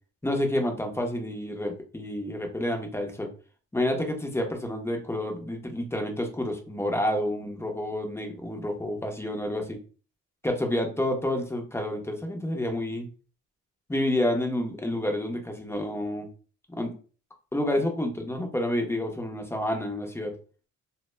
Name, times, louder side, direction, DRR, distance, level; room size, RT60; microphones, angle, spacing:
voice 1, 0.2-3.3 3.7-9.8 10.4-13.1 13.9-16.3 16.7-16.9 17.5-20.3, left 1 dB, 10° left, 3 dB, 0.5 m, -29 dB
2.1 x 2.1 x 3.1 m, 0.39 s
cardioid pair, 90°, 30 cm